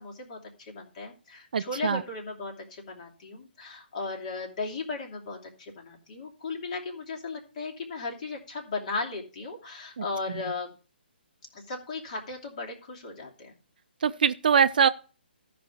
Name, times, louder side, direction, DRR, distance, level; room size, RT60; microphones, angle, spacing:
voice 1, 0.0-10.7 11.5-13.6, left 3 dB, 45° left, 2.8 m, -36 dB
voice 2, 1.5-2.0 10.0-10.1 14.0-14.9, right 7 dB, 55° right, 0.5 m, -23 dB
13.5 x 5.3 x 5.1 m
figure-of-eight pair, 135°, 6 cm